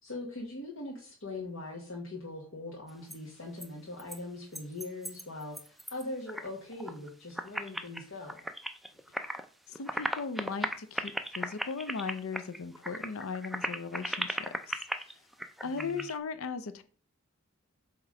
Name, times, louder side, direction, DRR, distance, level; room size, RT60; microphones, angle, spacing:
voice 1, 0.0-8.4 15.6-16.0, left 2 dB, 65° left, -2 dB, 1.3 m, -41 dB
sound 1, 2.9-3.2 3.6-3.7 4.0-4.2 4.5-6.5 6.7-7.1 7.4-9.5 9.7-16.1, equal, ahead, 0.3 m, -37 dB
voice 2, 9.7-15.2 15.6-16.8, left 5 dB, 85° left, 11 dB, 0.5 m, -38 dB
7.4 x 3.0 x 4.8 m, 0.41 s
head